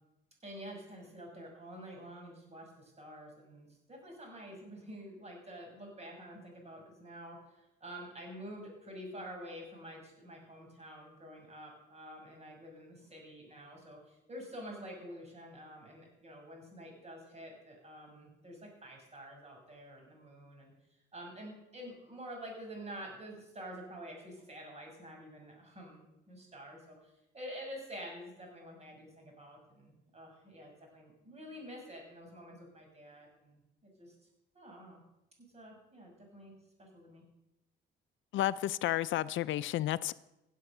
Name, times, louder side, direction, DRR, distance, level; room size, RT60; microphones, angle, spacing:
voice 1, 0.4-20.7 21.1-34.1 34.5-35.0 35.5-36.5 36.8-37.2, equal, 30° right, 1 dB, 6.5 m, -48 dB
voice 2, 38.3-40.1, left 14 dB, 75° left, 17 dB, 0.5 m, -31 dB
17.0 x 8.1 x 6.7 m, 0.91 s
cardioid pair, 90°, 20 cm